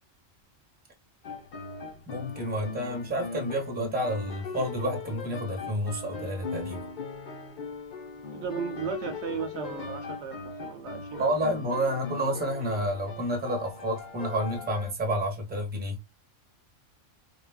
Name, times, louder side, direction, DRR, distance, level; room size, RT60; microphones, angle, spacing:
Silent Movie - Sam Fox - Oriental Veil Dance, 1.2-14.9, left 4 dB, 45° left, 0.7 m, -40 dB
voice 1, 2.1-6.9 11.2-16.0, equal, 10° right, 0.7 m, -30 dB
voice 2, 8.3-11.4, right 6 dB, 70° right, 0.8 m, -35 dB
3.4 x 2.3 x 2.2 m
omnidirectional pair, 1.3 m